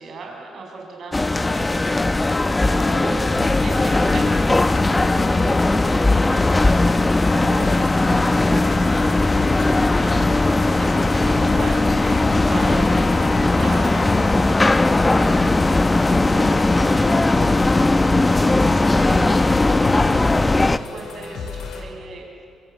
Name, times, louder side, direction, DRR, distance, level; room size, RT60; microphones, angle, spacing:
voice 1, 0.0-22.2, right 3 dB, 55° right, 0 dB, 7.1 m, -36 dB
sound 1, 1.1-20.8, left 2 dB, 20° left, 0.8 m, -18 dB
sound 2, 3.3-21.8, left 5 dB, 70° left, 5.4 m, -33 dB
26.0 x 24.0 x 9.3 m, 2.6 s
cardioid pair, 90°, 0 cm